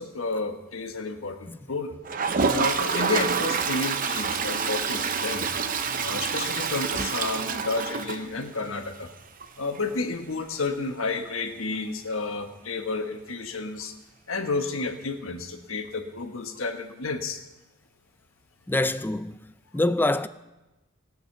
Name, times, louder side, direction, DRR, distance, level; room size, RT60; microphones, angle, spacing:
voice 1, 0.0-1.9 2.5-5.5 6.0-9.1 9.6-13.9 14.3-17.4, left 3 dB, 85° left, 1.3 m, -31 dB
Toilet flush, 2.1-8.8 9.1-9.2 9.4-9.5 9.8-9.9 12.4-12.5 13.8-13.9, right 5 dB, 45° right, 0.7 m, -27 dB
voice 2, 18.7-19.3 19.7-20.3, left 2 dB, 10° left, 0.4 m, -25 dB
18.0 x 6.7 x 6.6 m
head